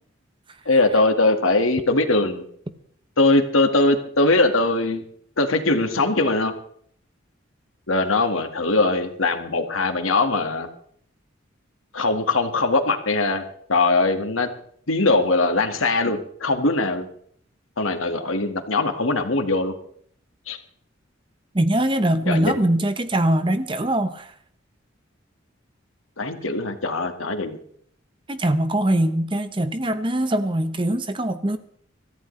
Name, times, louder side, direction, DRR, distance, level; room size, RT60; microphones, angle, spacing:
voice 1, 0.6-2.4 3.2-5.0 5.4-6.5 7.9-10.7 11.9-13.4 13.7-14.5 14.9-17.0 17.8-19.7 20.5-20.6 22.2-22.6 26.2-27.6, left 2 dB, 90° left, 1.9 m, -21 dB
voice 2, 21.5-24.3 28.3-31.6, right 1 dB, 25° right, 0.9 m, -22 dB
25.5 x 14.5 x 3.3 m
head